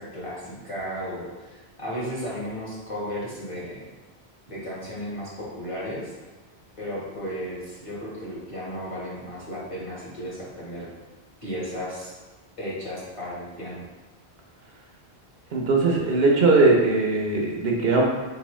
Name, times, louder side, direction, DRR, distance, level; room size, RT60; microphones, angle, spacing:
voice 1, 0.0-3.8 4.5-6.1 6.8-10.9 11.4-12.2 12.6-13.8, equal, 30° left, -7 dB, 1.4 m, -34 dB
voice 2, 15.5-18.0, right 3 dB, 65° right, -1 dB, 0.9 m, -20 dB
4.1 x 3.7 x 3.1 m, 1.2 s
omnidirectional pair, 1.1 m